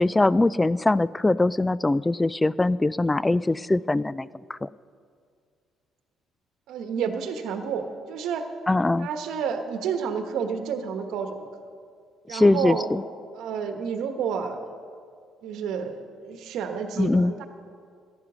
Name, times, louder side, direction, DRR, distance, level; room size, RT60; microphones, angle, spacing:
voice 1, 0.0-4.7 8.7-9.1 12.3-13.0 17.0-17.3, left 2 dB, 15° left, 20 dB, 0.3 m, -22 dB
voice 2, 6.7-8.4 9.0-11.5 12.3-12.9 13.3-14.6 15.4-17.5, right 6 dB, 75° right, 7 dB, 1.1 m, -30 dB
14.0 x 9.8 x 6.1 m, 2.2 s
supercardioid pair, 70°, 0 cm